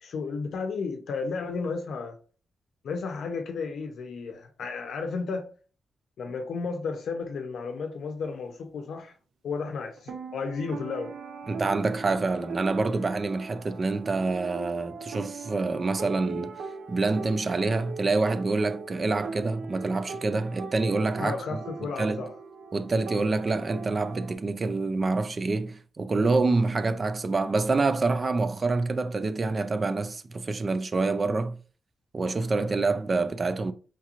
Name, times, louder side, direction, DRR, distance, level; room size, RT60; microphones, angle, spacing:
voice 1, 0.0-2.2 2.8-5.5 6.2-9.1 9.4-11.1 21.2-22.3, left 4 dB, 70° left, 0.6 m, -33 dB
sound 1, 10.0-24.3, right 4 dB, 85° right, 0.5 m, -40 dB
voice 2, 11.5-16.6 16.9-22.2 22.7-31.6 32.1-33.7, right 3 dB, 30° right, 0.3 m, -27 dB
4.4 x 2.9 x 2.5 m
wide cardioid pair, 145°, 0 cm